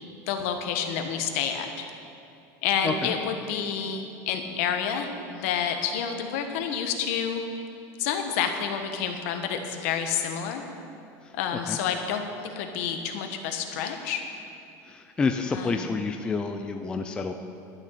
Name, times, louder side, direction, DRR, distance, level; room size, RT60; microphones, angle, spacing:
voice 1, 0.3-1.9 2.6-7.7 8.0-10.6 11.3-14.2 15.5-15.9, left 7 dB, 65° left, 5 dB, 1.2 m, -29 dB
voice 2, 14.9-17.3, left 4 dB, 10° left, 5 dB, 0.4 m, -28 dB
11.5 x 6.7 x 9.1 m, 2.6 s
cardioid pair, 175°, 8 cm